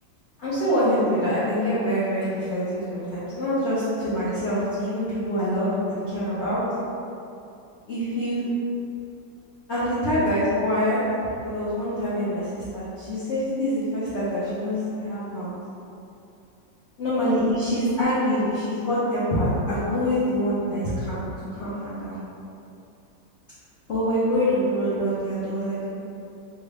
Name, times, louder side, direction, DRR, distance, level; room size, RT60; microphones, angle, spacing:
voice 1, 0.4-6.6 7.9-8.4 9.7-11.0 11.4-15.5 17.0-21.2 21.5-22.2 23.9-25.9, equal, 60° left, -12 dB, 0.7 m, -25 dB
3.4 x 2.2 x 3.4 m, 2.6 s
omnidirectional pair, 2.0 m